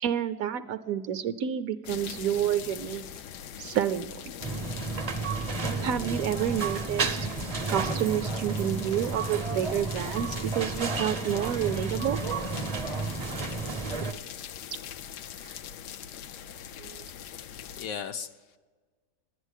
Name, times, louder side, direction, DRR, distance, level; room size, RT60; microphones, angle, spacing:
voice 1, 0.0-3.0 3.6-4.3 5.8-7.3 7.7-12.2 15.4-15.5 16.8-17.1, right 10 dB, 70° right, 11 dB, 0.9 m, -29 dB
sound 1, 1.8-17.9, left 9 dB, 85° left, 1.2 m, -42 dB
sound 2, 4.4-14.1, right 4 dB, 40° right, 0.5 m, -32 dB
voice 2, 17.0-18.6, left 7 dB, 70° left, 9 dB, 1.0 m, -39 dB
11.5 x 10.5 x 8.1 m, 1.4 s
omnidirectional pair, 1.7 m